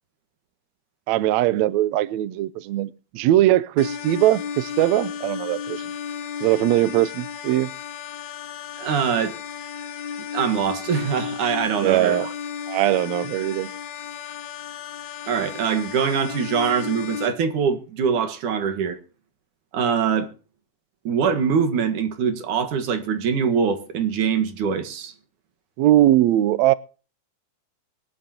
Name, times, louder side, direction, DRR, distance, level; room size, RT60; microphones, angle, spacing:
voice 1, 1.1-5.8 6.4-7.7 11.7-12.3 12.7-13.7 25.8-26.7, right 14 dB, 80° right, 1.6 m, -20 dB
sound 1, 3.8-17.3, left 7 dB, 60° left, 2.6 m, -34 dB
voice 2, 8.8-9.4 10.3-12.3 15.3-19.0 19.7-20.3 21.0-25.1, right 6 dB, 65° right, 3.0 m, -23 dB
23.0 x 11.5 x 2.9 m
omnidirectional pair, 4.1 m